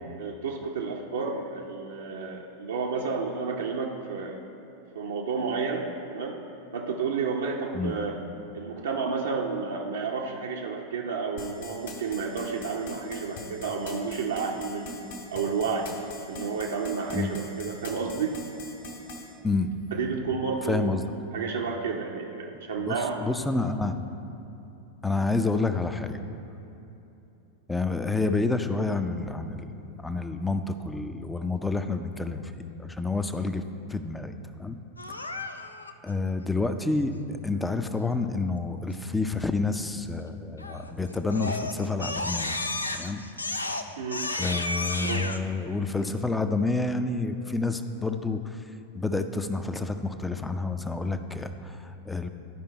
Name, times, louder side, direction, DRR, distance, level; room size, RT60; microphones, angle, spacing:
voice 1, 0.2-4.4 4.9-6.4 6.7-8.2 8.5-15.0 15.3-15.9 16.3-18.4 19.9-21.0 21.3-23.2 44.0-44.3 45.0-45.3, right 5 dB, 65° right, -1 dB, 0.7 m, -31 dB
sound 1, 11.4-19.2, left 2 dB, 60° left, 1.5 m, -42 dB
voice 2, 20.6-21.0 22.8-23.0 23.2-24.0 25.0-26.2 27.7-32.4 32.8-33.6 33.9-34.8 36.0-42.6 42.9-43.2 44.4-48.6 48.9-52.3, left 3 dB, 5° left, 8 dB, 0.5 m, -29 dB
Crying sobbing, 35.0-35.9 40.6-40.9 41.3-45.4, left 2 dB, 80° left, 0.4 m, -32 dB
12.5 x 5.2 x 4.5 m, 2.9 s
figure-of-eight pair, 90°, 0 cm